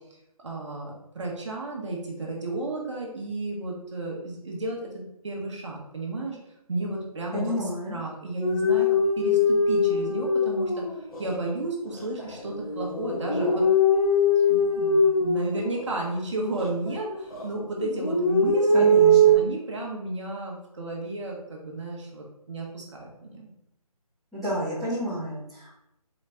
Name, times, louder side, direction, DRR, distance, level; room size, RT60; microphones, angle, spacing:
voice 1, 0.4-6.4 6.7-7.5 7.9-8.9 9.2-13.7 14.5-18.9 19.4-23.5, right 2 dB, 50° right, -1 dB, 1.0 m, -33 dB
voice 2, 7.3-8.0 18.7-19.2 24.3-25.8, equal, ahead, -16 dB, 0.8 m, -30 dB
sound 1, 8.4-11.3 11.9-16.1 16.5-17.5 17.8-19.3, left 1 dB, 65° left, 1.5 m, -22 dB
3.9 x 3.1 x 3.3 m, 0.82 s
figure-of-eight pair, 155°, 20 cm